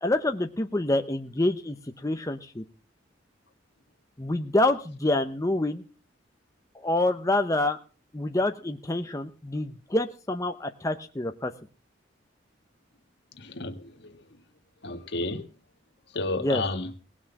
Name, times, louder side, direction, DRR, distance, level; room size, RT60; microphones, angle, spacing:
voice 1, 0.0-1.8 2.0-2.6 4.2-5.8 6.7-7.8 8.1-11.5 16.4-16.6, left 2 dB, 20° left, 0.7 m, -27 dB
voice 2, 13.4-14.2 14.8-15.5 16.1-16.9, left 2 dB, 65° left, 1.7 m, -32 dB
18.5 x 6.2 x 7.2 m
head